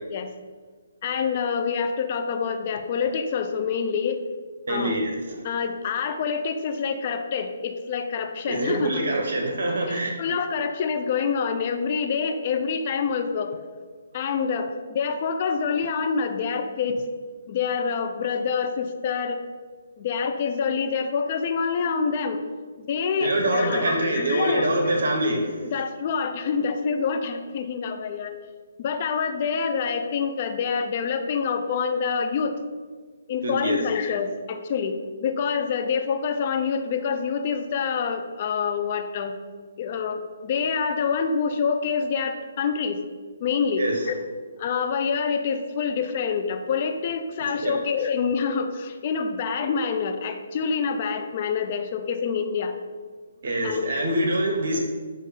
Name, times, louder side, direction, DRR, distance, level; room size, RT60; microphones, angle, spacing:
voice 1, 1.0-4.2 4.7-5.0 5.4-9.0 9.9-13.5 14.1-17.1 17.5-19.4 20.0-22.4 22.8-25.0 25.6-28.3 28.8-32.5 33.3-39.4 39.8-43.0 43.4-44.1 44.6-52.7 53.6-54.1, left 6 dB, 40° left, 6 dB, 0.5 m, -26 dB
voice 2, 4.7-5.4 8.5-10.1 23.2-25.6 33.4-33.8 43.8-44.0 47.6-47.8 53.4-54.8, right 1 dB, 70° right, 2 dB, 1.0 m, -25 dB
7.5 x 2.6 x 5.0 m, 1.5 s
hypercardioid pair, 150°, 0 cm